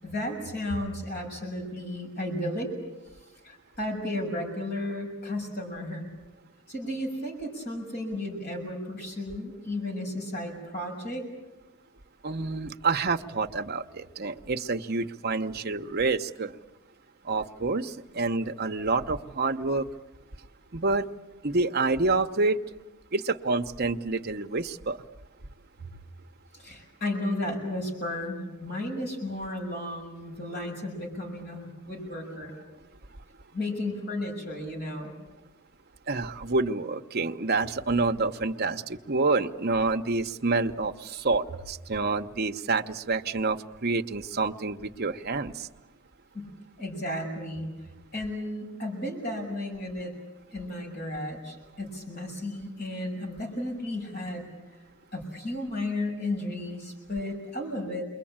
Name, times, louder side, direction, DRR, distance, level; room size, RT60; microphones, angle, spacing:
voice 1, 0.0-2.7 3.4-6.1 6.7-11.2 25.8-25.9 26.6-32.5 33.5-35.1 46.3-46.5 46.8-50.1 50.5-54.5 55.1-58.0, left 1 dB, 45° left, 0 dB, 6.6 m, -34 dB
voice 2, 12.2-16.5 17.2-19.9 20.7-21.1 21.4-22.6 23.1-25.0 36.1-45.7, right 3 dB, 45° right, 6 dB, 0.9 m, -28 dB
28.5 x 23.0 x 8.8 m, 1.1 s
head